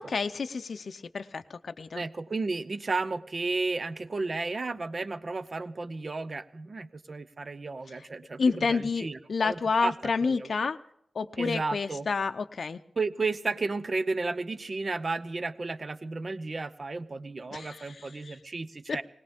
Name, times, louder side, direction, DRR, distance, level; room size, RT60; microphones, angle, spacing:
voice 1, 0.0-2.0 7.9-8.1 8.4-10.8 11.1-12.8 17.5-18.4 18.9-19.0, left 4 dB, 60° left, 8 dB, 0.6 m, -30 dB
voice 2, 1.9-9.9 10.2-10.5 11.4-12.1 13.0-19.0, right 3 dB, 40° right, 13 dB, 0.8 m, -33 dB
20.5 x 18.5 x 3.6 m, 0.73 s
wide cardioid pair, 120°, 0 cm